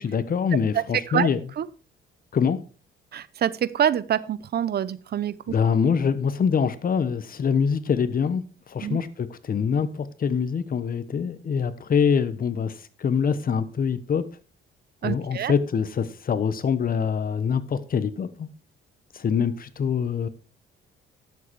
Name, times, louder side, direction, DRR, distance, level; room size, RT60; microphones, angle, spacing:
voice 1, 0.0-1.4 2.3-2.6 5.5-8.4 8.7-12.7 13.0-14.2 15.0-18.5 19.1-20.3, left 6 dB, 45° left, 1.1 m, -24 dB
voice 2, 0.5-1.3 1.6-1.7 3.1-5.4 8.8-9.0 15.0-15.5, right 10 dB, 55° right, 0.7 m, -26 dB
11.0 x 7.6 x 4.6 m
cardioid pair, 90°, 20 cm